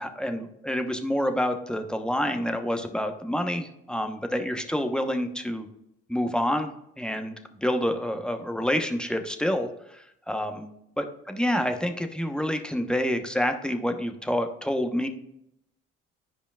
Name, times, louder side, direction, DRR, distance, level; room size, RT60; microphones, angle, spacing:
voice 1, 0.0-5.7 6.1-7.3 7.6-10.6 11.0-15.1, equal, 5° left, 6 dB, 1.0 m, -28 dB
10.0 x 5.0 x 2.4 m, 0.78 s
hypercardioid pair, 60°, 30 cm